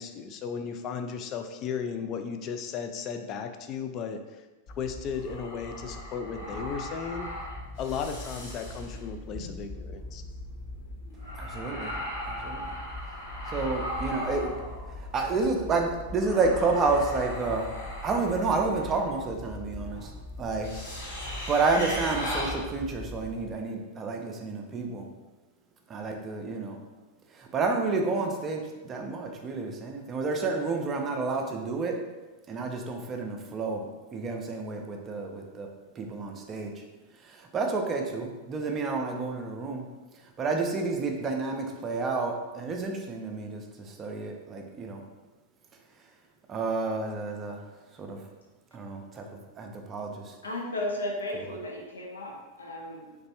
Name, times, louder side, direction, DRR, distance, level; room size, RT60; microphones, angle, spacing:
voice 1, 0.0-4.4 4.8-7.3 7.8-10.2, left 6 dB, 35° left, 7 dB, 0.3 m, -35 dB
sound 1, 4.7-23.5, left 1 dB, 55° left, 1.3 m, -38 dB
voice 2, 11.4-12.0 12.3-12.7 13.5-14.5 14.9-17.7 18.0-20.1 20.4-20.7 21.1-25.1 25.9-26.8 27.3-32.0 32.5-35.7 36.0-36.8 37.2-39.8 40.4-45.0 46.5-47.6 47.9-48.2 48.7-49.2 49.6-50.3 51.3-51.5, right 3 dB, 25° right, 3 dB, 0.5 m, -30 dB
voice 3, 50.4-53.3, left 1 dB, 75° left, 0 dB, 0.7 m, -35 dB
3.2 x 3.0 x 2.9 m, 1.2 s
figure-of-eight pair, 90°, 0 cm